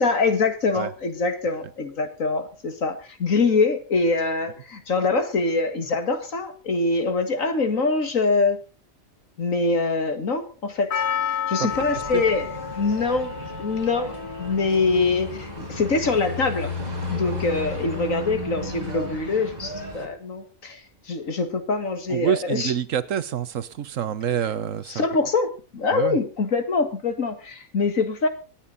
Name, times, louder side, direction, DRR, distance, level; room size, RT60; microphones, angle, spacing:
voice 1, 0.0-8.6 9.4-10.9 11.3-12.5 12.8-13.3 13.6-16.7 17.1-20.8 21.1-22.7 24.9-28.3, left 3 dB, 75° left, 8 dB, 2.3 m, -24 dB
Percussion, 10.9-15.3 15.5-15.6, left 8 dB, 55° left, 1.2 m, -31 dB
sound 1, 11.7-20.1, left 1 dB, 30° right, 3.5 m, -34 dB
voice 2, 22.1-25.1 25.9-26.2, right 9 dB, 70° right, 15 dB, 1.3 m, -27 dB
25.5 x 8.9 x 4.1 m, 0.34 s
omnidirectional pair, 1.4 m